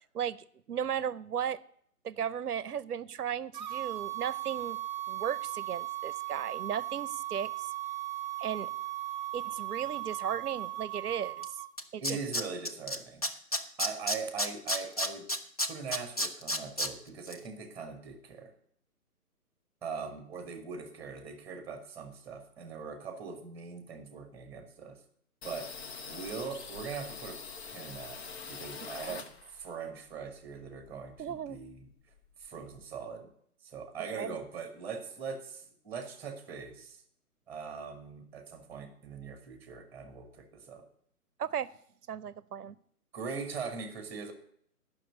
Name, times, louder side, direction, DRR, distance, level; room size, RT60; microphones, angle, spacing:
voice 1, 0.7-1.6 2.0-4.8 5.1-7.7 8.4-8.7 9.3-11.6 11.9-12.2 29.1-29.2 31.2-31.6 34.2-34.4 41.4-41.7 42.1-42.7, right 8 dB, 75° right, 19 dB, 0.7 m, -35 dB
sound 1, 3.5-11.7, right 14 dB, 30° right, 0.6 m, -37 dB
Tools, 11.4-11.5 11.8-13.0 13.2-16.9 17.3-17.4, equal, 25° left, 0.4 m, -30 dB
voice 2, 12.0-13.3 13.8-15.3 15.7-18.5 19.8-25.0 25.4-25.7 26.1-28.2 28.5-31.9 32.4-33.3 33.6-37.0 37.5-40.8 43.1-44.3, right 5 dB, 5° right, 7 dB, 1.3 m, -41 dB
sound 2, 25.4-29.8 30.1-31.5 31.8-31.9 32.1-32.8, left 5 dB, 40° left, 1.0 m, -44 dB
11.0 x 6.0 x 8.1 m, 0.64 s
figure-of-eight pair, 135°, 46 cm